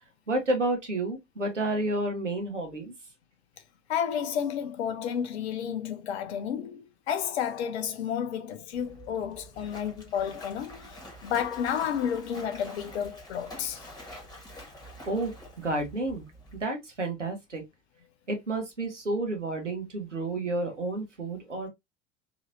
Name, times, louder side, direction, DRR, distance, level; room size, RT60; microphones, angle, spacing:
voice 1, 0.3-2.9 15.1-16.3 16.6-17.6 18.3-21.7, right 2 dB, 85° right, 1.2 m, -30 dB
voice 2, 3.9-13.8, left 8 dB, 65° left, 0.9 m, -31 dB
Splash splatter, 8.7-16.6, equal, 10° left, 1.8 m, -47 dB
4.0 x 3.0 x 2.6 m
figure-of-eight pair, 70°, 35 cm